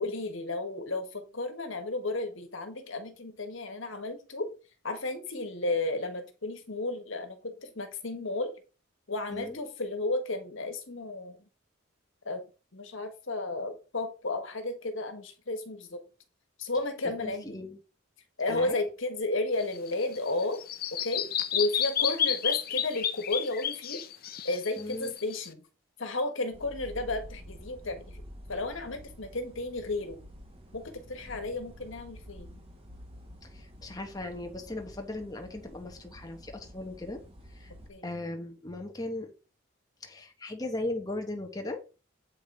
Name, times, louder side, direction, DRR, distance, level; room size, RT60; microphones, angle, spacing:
voice 1, 0.0-4.5 4.8-8.5 9.1-11.4 12.2-12.4 12.7-16.0 16.6-17.6 18.4-20.6 20.9-21.3 21.5-24.0 24.4-25.6 26.0-28.2 28.5-30.2 30.7-32.6 37.9-38.1, left 2 dB, 70° left, 7 dB, 1.5 m, -33 dB
voice 2, 17.2-17.8 18.5-18.8 24.8-25.1 33.4-37.2 37.5-37.7 38.0-39.3 40.0-41.8, left 2 dB, 20° left, 3 dB, 0.9 m, -37 dB
Bird vocalization bird call bird song, 19.6-25.5, left 9 dB, 45° left, 0.6 m, -31 dB
sound 1, 26.5-37.9, equal, 30° right, 1.5 m, -49 dB
8.2 x 5.1 x 3.8 m, 0.33 s
head